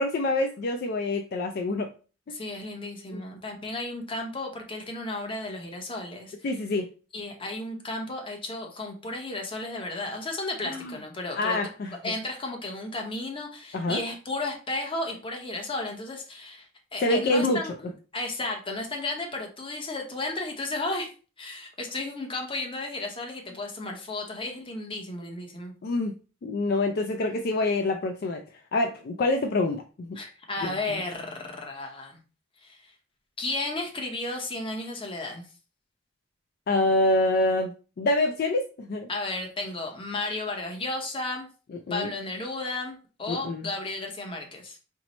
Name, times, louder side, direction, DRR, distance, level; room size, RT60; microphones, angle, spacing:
voice 1, 0.0-1.9 3.1-3.2 6.4-6.9 10.6-10.9 11.3-12.1 13.7-14.0 17.0-17.6 25.8-26.2 26.4-28.4 28.7-30.2 30.6-31.0 36.7-39.1 41.9-42.1 43.3-43.7, left 2 dB, 50° left, 4 dB, 0.3 m, -26 dB
voice 2, 2.3-6.3 7.1-11.6 12.0-16.7 16.9-21.1 21.4-25.7 30.2-32.2 32.6-32.9 33.4-35.5 39.1-41.5 41.9-44.8, left 2 dB, 25° left, 2 dB, 0.8 m, -33 dB
4.5 x 2.0 x 4.0 m, 0.36 s
head